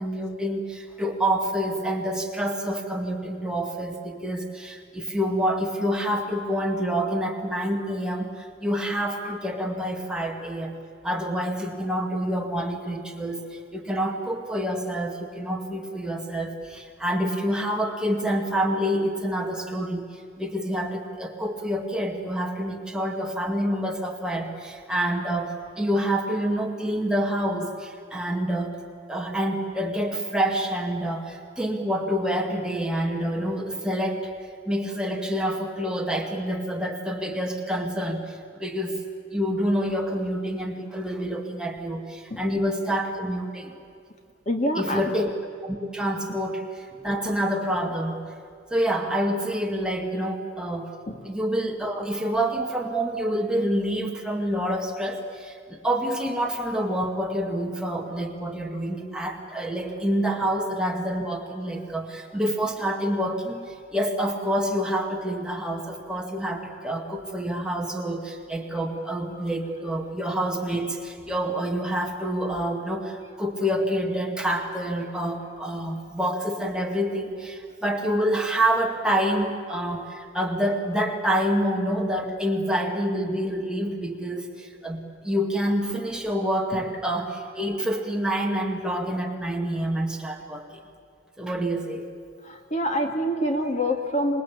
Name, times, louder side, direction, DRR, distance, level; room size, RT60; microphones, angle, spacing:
voice 1, 0.0-10.7 11.0-28.8 29.1-34.3 34.7-39.0 39.3-43.8 44.8-45.3 45.6-48.2 48.7-51.0 51.2-90.8 91.4-92.1, equal, 5° right, 1 dB, 2.1 m, -27 dB
voice 2, 44.5-45.0 51.1-51.2 92.5-94.4, equal, 40° left, 4 dB, 2.2 m, -26 dB
26.5 x 21.0 x 8.5 m, 2.3 s
head